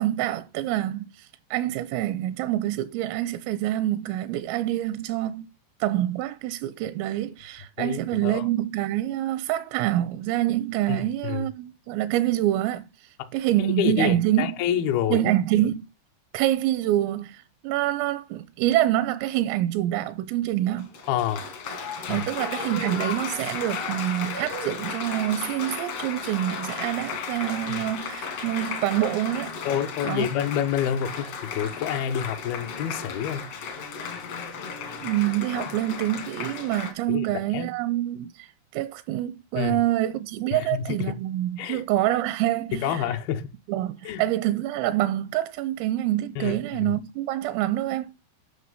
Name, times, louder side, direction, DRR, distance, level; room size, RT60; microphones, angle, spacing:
voice 1, 0.0-5.5 5.8-12.9 13.3-14.5 15.1-15.8 16.3-20.9 22.1-29.6 30.0-30.3 35.0-38.5 38.7-43.1 43.7-48.1, right 14 dB, 85° right, 3.3 m, -26 dB
voice 2, 7.8-8.4 10.9-11.5 13.2-13.3 13.6-15.3 21.1-21.5 22.1-22.3 27.7-27.8 29.7-33.5 35.6-35.8 37.1-37.3 37.5-37.7 39.6-39.8 40.5-41.1 41.6-41.8 42.7-43.5 44.0-44.2 46.4-46.9, left 9 dB, 85° left, 2.1 m, -28 dB
Applause, 20.7-36.9, left 5 dB, 70° left, 1.5 m, -34 dB
11.5 x 5.8 x 5.5 m
omnidirectional pair, 6.0 m